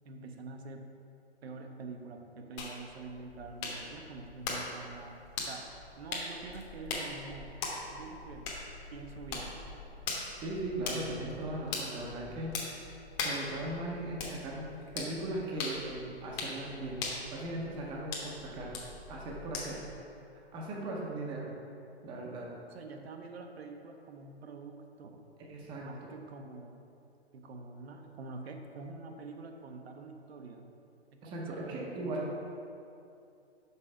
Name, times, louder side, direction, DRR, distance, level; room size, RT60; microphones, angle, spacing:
voice 1, 0.0-0.9 1.4-5.2 5.5-5.7 6.0-7.5 7.9-8.4 8.9-9.5 22.7-25.2 25.8-26.8 27.3-30.7 31.1-32.3, right 3 dB, 70° right, 4 dB, 0.8 m, -46 dB
sound 1, 2.6-20.0, left 3 dB, 25° left, 1.1 m, -41 dB
voice 2, 10.4-12.5 13.2-17.0 17.3-18.7 19.1-19.8 20.5-21.5 22.0-22.5 25.5-26.1 31.2-32.3, right 2 dB, 15° right, -3 dB, 0.7 m, -38 dB
5.5 x 5.3 x 4.8 m, 2.7 s
hypercardioid pair, 140°, 33 cm